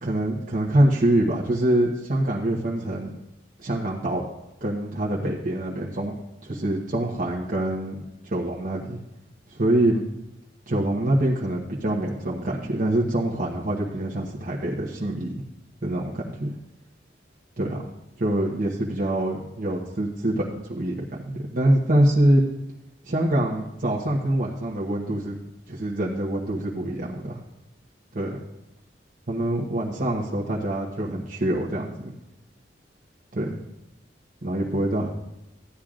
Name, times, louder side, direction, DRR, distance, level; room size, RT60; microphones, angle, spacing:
voice 1, 0.0-3.2 3.6-4.2 4.6-6.1 6.4-9.0 9.5-10.0 10.7-15.3 15.8-16.5 17.6-17.8 18.2-21.0 21.2-22.4 23.0-25.4 25.7-27.4 28.1-28.4 29.3-32.1 33.3-33.6 34.4-35.1, right 1 dB, 50° right, -5 dB, 1.1 m, -25 dB
14.5 x 10.0 x 2.5 m, 0.96 s
head